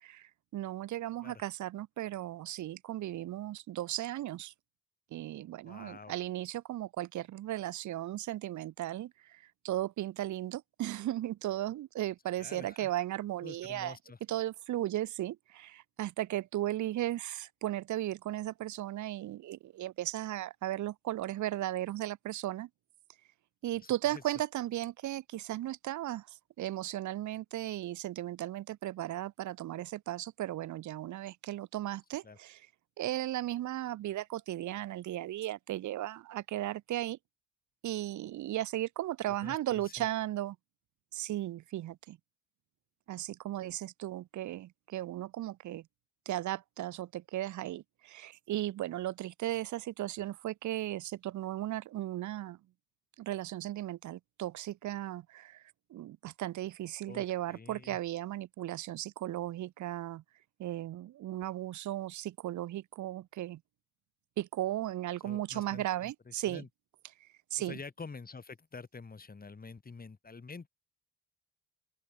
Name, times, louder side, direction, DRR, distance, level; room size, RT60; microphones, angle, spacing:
voice 1, 0.0-4.5 5.1-14.0 14.3-22.7 23.6-32.6 33.0-37.2 37.8-40.6 41.1-42.2 43.1-45.9 46.3-52.6 53.2-55.6 55.9-60.2 60.6-63.6 64.4-66.6 67.2-67.8, right 14 dB, 70° right, 1.1 m, -36 dB
voice 2, 5.6-6.2 12.4-12.9 13.4-14.2 23.8-24.2 32.2-32.4 39.4-40.1 57.1-58.0 65.2-66.7 67.6-70.7, left 4 dB, 30° left, 7.0 m, -48 dB
open air
cardioid pair, 90°, 30 cm